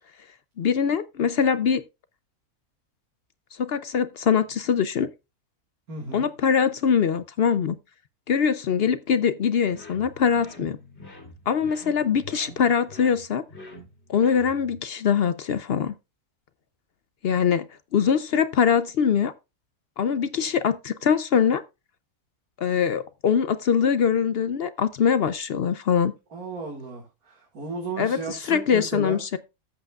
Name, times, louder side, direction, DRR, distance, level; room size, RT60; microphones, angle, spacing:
voice 1, 0.6-1.8 3.6-5.1 6.1-7.8 8.3-10.8 11.5-13.4 14.1-15.9 17.2-17.6 17.9-19.3 20.0-21.6 22.6-26.1 28.0-29.4, left 7 dB, 60° left, 0.6 m, -23 dB
voice 2, 5.9-6.3 26.3-29.2, right 3 dB, 80° right, 2.4 m, -34 dB
sound 1, 9.7-14.8, left 1 dB, 45° left, 3.1 m, -46 dB
13.0 x 8.1 x 2.4 m
omnidirectional pair, 1.5 m